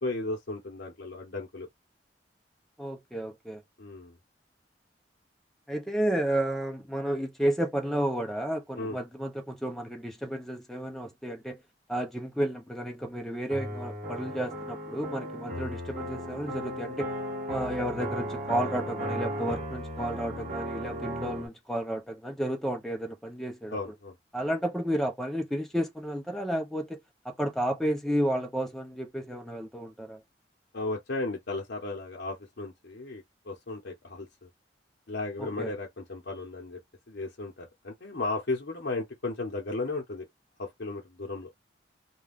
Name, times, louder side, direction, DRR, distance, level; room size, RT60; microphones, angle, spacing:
voice 1, 0.0-1.7 3.8-4.2 8.8-9.0 23.7-24.1 30.7-34.5 35.1-36.8 37.1-40.3 40.6-41.5, left 2 dB, 65° left, 0.8 m, -35 dB
voice 2, 2.8-3.6 5.7-11.6 11.9-17.1 17.5-23.8 24.3-27.0 27.4-30.2 35.4-35.7, right 1 dB, ahead, 0.5 m, -32 dB
sound 1, 13.5-21.5, equal, 45° right, 1.3 m, -35 dB
2.5 x 2.3 x 3.4 m
head